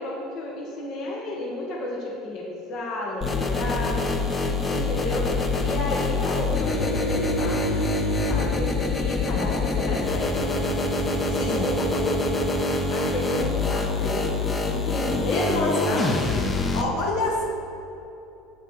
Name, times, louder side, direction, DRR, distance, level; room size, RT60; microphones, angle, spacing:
voice 1, 0.0-4.0 4.7-5.3 5.6-7.8 8.3-10.5 11.5-12.2 12.9-14.3 14.6-16.1, left 1 dB, 55° left, -2 dB, 1.6 m, -31 dB
sound 1, 3.2-16.8, left 2 dB, 25° left, 1.0 m, -25 dB
voice 2, 9.3-9.9 11.3-11.7 15.3-16.1 16.7-17.4, left 2 dB, 75° left, -1 dB, 1.8 m, -28 dB
8.1 x 6.2 x 6.5 m, 3.0 s
supercardioid pair, 105°, 0 cm